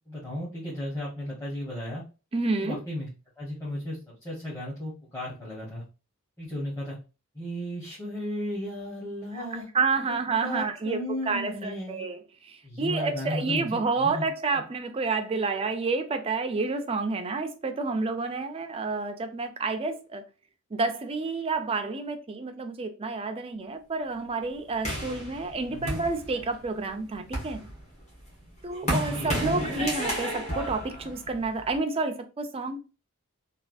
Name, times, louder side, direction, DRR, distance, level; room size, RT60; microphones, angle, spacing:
voice 1, 0.1-2.0 2.6-3.1 3.4-4.0 4.2-5.8 6.4-7.0 7.3-9.7 10.0-10.2 10.4-12.0 12.6-14.2 25.7-26.0 28.8-29.4, left 1 dB, 15° left, 1.1 m, -35 dB
voice 2, 2.3-2.8 9.4-9.5 9.7-11.0 11.3-12.2 12.4-20.2 20.7-27.7 28.6-32.8, right 3 dB, 25° right, 0.4 m, -29 dB
sound 1, 24.8-26.7 27.1-31.8, equal, 30° left, 1.3 m, -32 dB
3.2 x 2.3 x 2.5 m
head